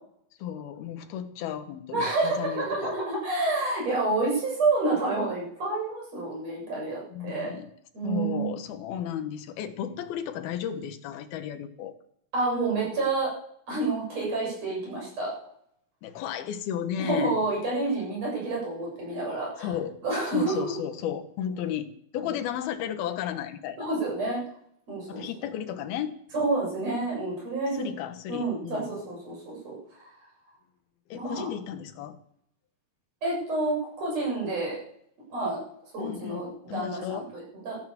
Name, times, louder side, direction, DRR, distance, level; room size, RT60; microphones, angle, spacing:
voice 1, 0.4-3.0 7.1-7.7 8.0-11.9 16.0-17.4 19.6-20.0 20.3-23.9 25.1-26.2 27.7-29.0 31.1-32.2 36.0-37.3, left 9 dB, 80° left, 9 dB, 3.1 m, -34 dB
voice 2, 1.9-7.5 7.9-8.5 12.3-13.3 13.7-15.3 17.0-19.7 20.0-20.7 22.2-22.3 23.8-24.4 24.9-25.2 26.3-27.9 28.3-29.8 31.1-31.5 33.2-34.8 35.3-35.6 35.9-37.8, right 2 dB, 40° right, -3 dB, 8.5 m, -29 dB
15.0 x 12.5 x 7.0 m, 0.71 s
omnidirectional pair, 4.3 m